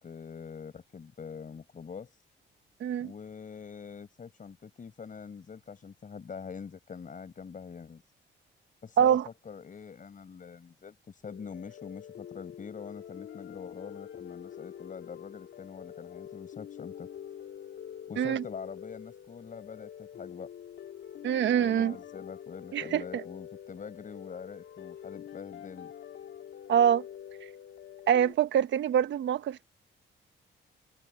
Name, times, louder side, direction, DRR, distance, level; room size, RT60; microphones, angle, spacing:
voice 1, 0.0-2.2 3.0-8.0 8.8-17.1 18.1-20.5 21.6-25.9, left 6 dB, 40° left, 5.4 m, -44 dB
voice 2, 2.8-3.1 9.0-9.3 18.2-18.4 21.2-21.9 22.7-23.2 26.7-27.0 28.1-29.7, right 9 dB, 70° right, 1.3 m, -25 dB
sound 1, 11.2-28.3, left 9 dB, 70° left, 2.5 m, -46 dB
cardioid pair, 90°, 20 cm